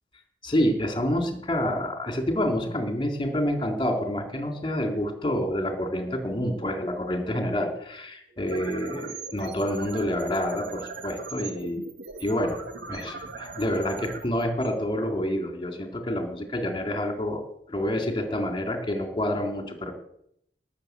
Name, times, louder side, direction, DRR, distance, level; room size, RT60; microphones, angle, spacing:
voice 1, 0.4-11.9 12.2-12.6 12.9-17.4 17.7-19.9, left 1 dB, 30° left, 4 dB, 3.6 m, -28 dB
sound 1, 8.3-15.4, right 4 dB, 75° right, 2.2 m, -40 dB
18.5 x 7.9 x 8.2 m, 0.70 s
head